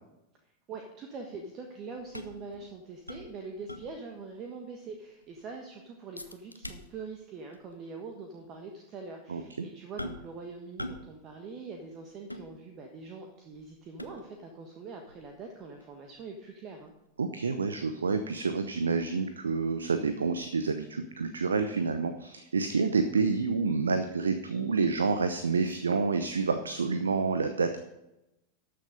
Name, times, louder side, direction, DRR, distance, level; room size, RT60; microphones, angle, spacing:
voice 1, 0.7-16.9, right 4 dB, 35° right, 3 dB, 1.4 m, -43 dB
sound 1, 2.0-4.3 4.6-4.7 5.1-5.5 6.2-7.2 7.5-7.7 8.4-8.5 10.0-10.4 10.8-11.2 11.4-13.0 13.5-14.5 15.1-17.9 18.2-18.3, equal, 90° left, 0.8 m, -44 dB
voice 2, 9.3-9.7 17.2-27.8, right 4 dB, 75° right, 9 dB, 0.7 m, -28 dB
13.0 x 6.7 x 5.2 m, 0.91 s
figure-of-eight pair, 90°, 0 cm